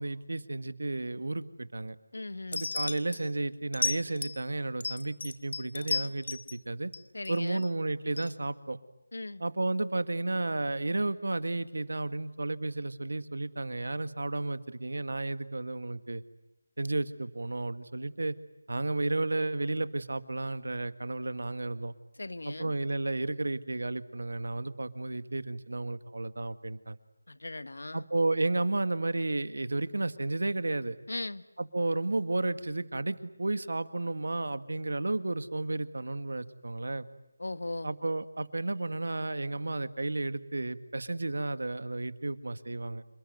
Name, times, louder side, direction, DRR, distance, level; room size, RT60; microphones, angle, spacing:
voice 1, 0.0-2.0 2.5-6.9 7.3-8.8 9.4-16.2 16.8-18.4 18.7-21.9 22.5-27.0 27.9-31.0 31.6-37.1 37.8-43.0, right 2 dB, 75° right, 12 dB, 1.8 m, -32 dB
voice 2, 2.1-2.7 7.1-7.6 9.1-9.4 22.2-22.7 27.3-28.1 31.1-31.4 37.4-37.9, left 2 dB, 85° left, 13 dB, 1.6 m, -38 dB
sound 1, 2.5-3.2 3.7-4.4 4.8-6.6 6.9-7.7 8.2-8.3, left 4 dB, 45° left, 1.8 m, -33 dB
28.0 x 21.5 x 9.4 m, 0.91 s
figure-of-eight pair, 175°, 0 cm